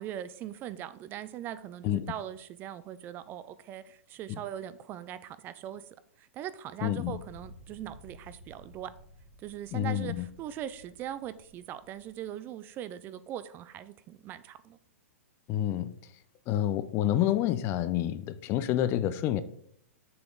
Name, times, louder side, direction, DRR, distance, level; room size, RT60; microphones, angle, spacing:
voice 1, 0.0-5.8 6.2-8.9 9.4-14.8, right 11 dB, 25° right, 0.3 m, -40 dB
voice 2, 6.8-7.2 9.7-10.3 15.5-15.9 16.5-19.4, left 12 dB, 30° left, 0.5 m, -28 dB
sound 1, 7.0-12.3, equal, 50° right, 2.3 m, -54 dB
6.7 x 6.0 x 3.8 m
hypercardioid pair, 140°, 8 cm